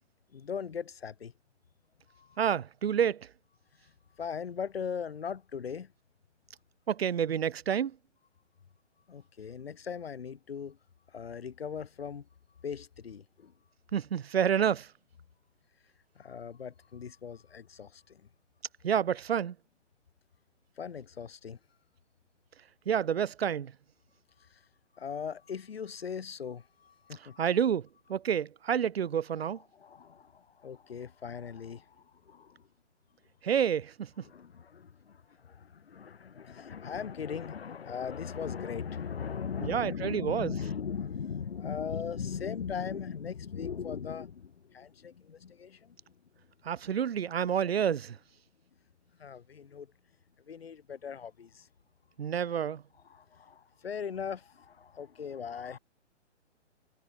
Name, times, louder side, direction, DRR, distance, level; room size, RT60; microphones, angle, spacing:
voice 1, 0.3-1.3 2.1-2.4 3.8-5.9 9.1-10.8 11.1-12.2 12.6-13.5 16.2-18.3 20.8-21.6 24.4-24.7 24.9-27.4 29.5-32.7 34.2-46.0 49.2-49.9 50.5-51.7 53.0-55.8, left 7 dB, 55° left, 5.9 m, -39 dB
voice 2, 2.4-3.3 6.9-7.9 13.9-14.9 18.8-19.5 22.9-23.7 27.4-29.6 33.4-34.1 39.6-40.5 46.6-48.2 52.2-52.8, right 8 dB, 55° right, 0.8 m, -29 dB
hypercardioid pair, 180°, 36 cm